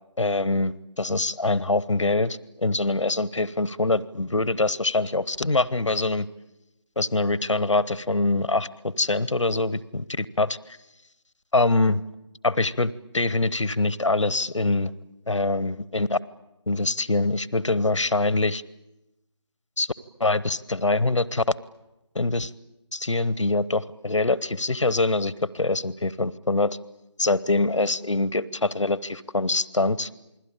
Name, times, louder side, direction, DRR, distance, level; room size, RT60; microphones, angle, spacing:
voice 1, 0.2-6.3 7.0-10.8 11.5-12.0 12.4-14.9 15.3-16.2 16.7-18.6 19.8-19.9 20.2-21.4 22.1-22.5 22.9-26.8 27.2-30.1, left 2 dB, 75° left, 18 dB, 0.9 m, -24 dB
28.5 x 21.0 x 8.7 m, 0.93 s
figure-of-eight pair, 160°, 16 cm